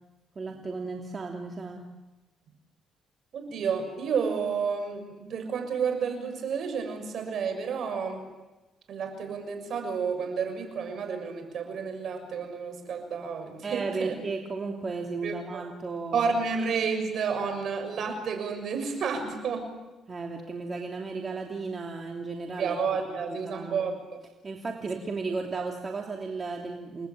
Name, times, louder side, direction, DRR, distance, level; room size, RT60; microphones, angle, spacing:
voice 1, 0.3-1.8 13.6-16.3 20.1-22.8 23.1-23.8 24.4-27.1, right 4 dB, 35° right, 2 dB, 3.0 m, -34 dB
voice 2, 3.3-8.2 8.9-14.1 15.2-15.6 16.1-19.7 22.6-24.0 24.8-24.9, right 5 dB, 65° right, 6 dB, 6.7 m, -31 dB
29.5 x 20.0 x 9.2 m, 1.1 s
cardioid pair, 90°, 0 cm